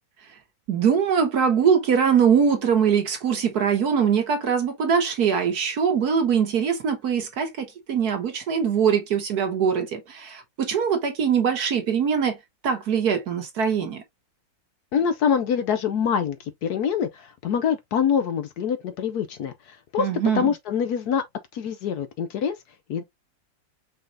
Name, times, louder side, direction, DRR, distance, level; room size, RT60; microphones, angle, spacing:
voice 1, 0.7-12.4 12.6-14.0 20.0-20.5, right 7 dB, 60° right, 1.6 m, -22 dB
voice 2, 14.9-20.1 20.3-21.2 21.5-22.6 22.9-23.0, left 7 dB, 65° left, 1.1 m, -25 dB
5.5 x 3.7 x 2.6 m
omnidirectional pair, 2.0 m